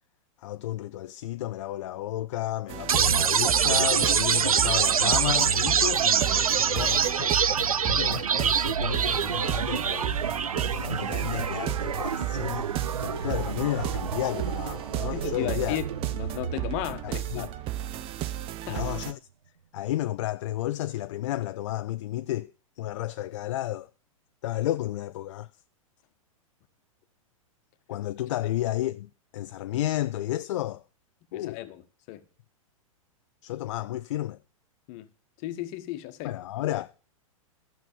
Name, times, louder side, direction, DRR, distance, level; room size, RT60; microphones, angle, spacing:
voice 1, 0.4-7.4 7.9-10.1 10.6-12.7 13.0-15.8 17.0-17.5 18.7-19.2 19.7-22.5 22.8-23.9 24.4-25.5 27.9-30.8 31.3-31.6 33.4-34.4 36.2-37.0, left 14 dB, 60° left, 0.4 m, -32 dB
sound 1, 2.7-19.1, right 12 dB, 30° right, 0.7 m, -34 dB
sound 2, 2.9-16.9, right 7 dB, 85° right, 0.6 m, -26 dB
voice 2, 15.1-15.8 16.1-17.5 18.7-18.8 31.3-31.8 32.1-32.2 34.9-35.1 35.4-36.3, left 14 dB, 40° left, 1.3 m, -34 dB
12.5 x 6.4 x 7.0 m
hypercardioid pair, 110°, 18 cm